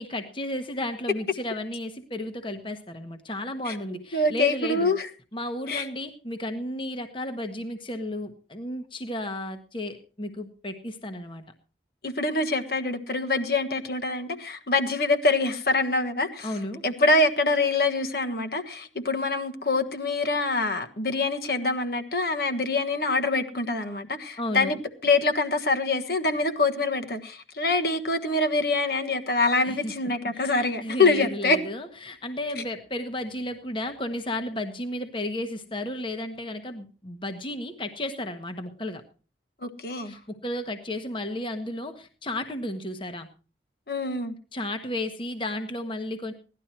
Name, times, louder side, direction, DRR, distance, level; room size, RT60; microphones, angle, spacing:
voice 1, 0.0-4.9 5.3-11.4 16.4-16.8 24.4-24.7 29.6-29.9 30.3-39.0 40.0-43.3 44.5-46.3, left 1 dB, 30° left, 7 dB, 1.2 m, -33 dB
voice 2, 4.1-5.1 5.7-5.8 12.0-16.5 16.8-24.8 25.0-31.6 32.6-32.7 39.6-40.2 43.9-44.4, left 3 dB, 55° left, 7 dB, 1.4 m, -25 dB
17.5 x 11.5 x 4.4 m, 0.36 s
head